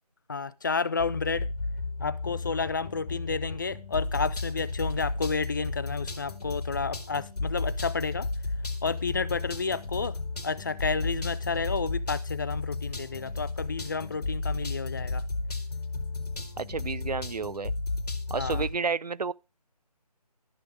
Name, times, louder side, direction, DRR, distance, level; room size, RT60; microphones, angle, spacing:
voice 1, 0.3-1.5 2.0-8.3 8.8-10.2 10.4-15.2 18.4-18.6, left 4 dB, 30° left, 0.5 m, -31 dB
sound 1, 1.0-18.7, left 3 dB, 70° left, 2.2 m, -33 dB
voice 2, 16.6-17.7 18.3-19.3, right 5 dB, 75° right, 0.7 m, -31 dB
13.0 x 6.1 x 4.8 m
figure-of-eight pair, 155°, 21 cm